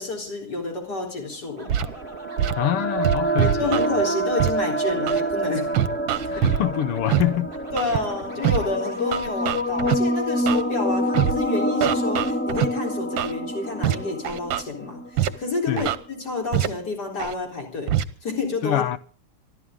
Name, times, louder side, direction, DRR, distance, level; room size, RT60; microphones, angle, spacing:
voice 1, 0.0-1.7 3.4-5.7 6.2-6.5 7.7-17.9 18.2-18.8, left 3 dB, 45° left, 4.6 m, -29 dB
sound 1, 1.4-15.6, right 1 dB, 10° left, 0.8 m, -27 dB
sound 2, 1.6-11.1, right 3 dB, 30° right, 2.7 m, -42 dB
Scratching (performance technique), 1.7-1.9 2.4-2.5 3.0-3.9 4.4-4.5 5.1-5.2 5.7-6.6 7.1-7.2 7.8-8.0 8.4-8.6 9.1-10.0 10.5-10.6 11.1-11.3 11.8-12.7 13.2-13.3 13.8-14.0 14.2-14.6 15.2-15.3 15.8-16.0 16.5-16.7 17.2-17.3 17.9-18.0, right 11 dB, 65° right, 1.5 m, -22 dB
voice 2, 2.6-4.0 6.3-7.5 15.7-15.9 18.6-19.0, left 12 dB, 85° left, 1.9 m, -25 dB
25.5 x 13.0 x 3.8 m
omnidirectional pair, 2.4 m